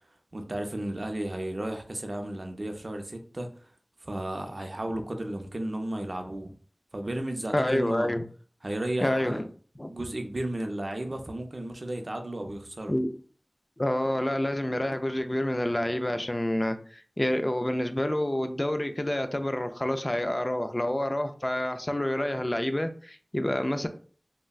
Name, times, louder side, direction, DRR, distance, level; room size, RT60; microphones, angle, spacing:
voice 1, 0.3-3.5 4.0-6.5 6.9-8.1 8.6-9.5 9.9-12.9, right 1 dB, 60° right, 0.5 m, -34 dB
voice 2, 7.5-8.2 9.0-9.5 9.8-9.9 12.9-13.1 13.8-23.9, left 1 dB, 30° left, 0.3 m, -28 dB
3.5 x 2.1 x 2.3 m
wide cardioid pair, 45°, 0 cm